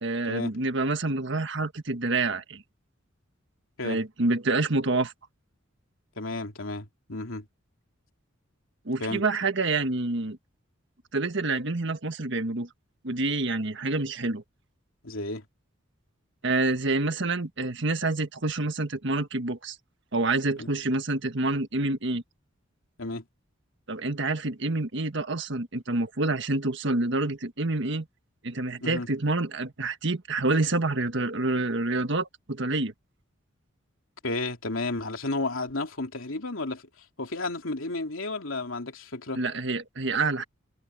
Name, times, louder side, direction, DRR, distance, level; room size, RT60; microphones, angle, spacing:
voice 1, 0.0-2.6 3.8-5.1 8.8-10.4 11.1-12.7 13.0-14.4 16.4-19.8 20.1-22.2 23.9-28.1 28.4-32.9 39.4-40.4, right 2 dB, 60° right, 1.6 m, -27 dB
voice 2, 6.2-7.4 9.0-9.2 15.0-15.4 20.6-20.7 23.0-23.2 28.8-29.1 34.2-36.8 37.2-39.4, left 2 dB, 80° left, 3.0 m, -32 dB
head